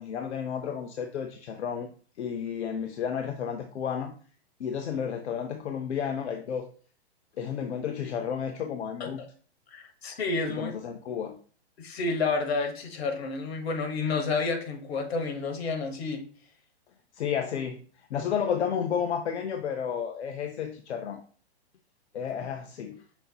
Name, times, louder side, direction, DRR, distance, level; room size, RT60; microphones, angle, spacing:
voice 1, 0.0-1.9 2.2-4.1 4.6-6.7 7.4-9.2 10.5-11.4 17.1-17.8 18.1-21.2 22.1-23.0, left 7 dB, 85° left, 6 dB, 0.6 m, -32 dB
voice 2, 9.7-10.7 11.8-16.2, left 4 dB, 70° left, 5 dB, 1.2 m, -30 dB
5.6 x 3.9 x 2.3 m, 0.42 s
hypercardioid pair, 135°, 33 cm